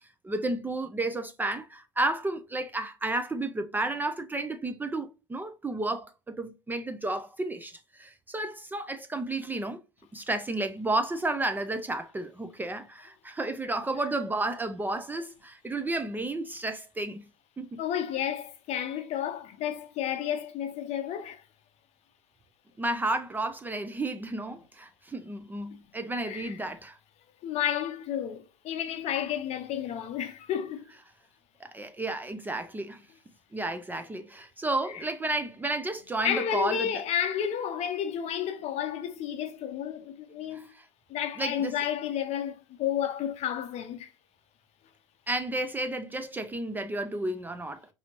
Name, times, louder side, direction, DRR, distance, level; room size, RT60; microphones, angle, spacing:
voice 1, 0.2-9.8 10.1-17.2 17.6-17.8 22.8-27.0 31.6-33.0 33.5-36.9 40.5-40.9 41.4-41.8 45.3-47.9, right 2 dB, 10° right, 0.5 m, -32 dB
voice 2, 17.8-21.4 26.2-26.6 27.4-30.9 34.9-35.0 36.2-40.7 41.1-44.1, left 9 dB, 45° left, 0.8 m, -31 dB
4.9 x 2.7 x 2.9 m
hypercardioid pair, 80°, 16 cm